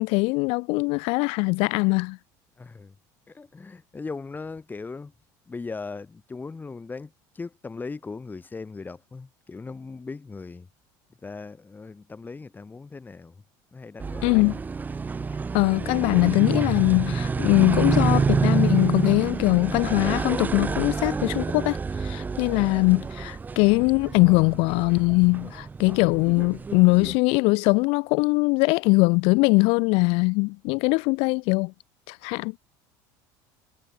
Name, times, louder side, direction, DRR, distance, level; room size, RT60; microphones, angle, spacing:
voice 1, 0.0-2.2 14.2-14.6 15.5-31.7 32.1-32.5, left 29 dB, 70° left, 0.5 m, -21 dB
voice 2, 2.6-2.9 3.3-5.1 5.5-10.7 11.2-13.4 13.7-14.5 15.2-15.4 22.2-22.5, left 4 dB, 20° left, 1.7 m, -39 dB
sound 1, 14.0-27.2, right 4 dB, 15° right, 0.4 m, -28 dB
supercardioid pair, 100°, 10 cm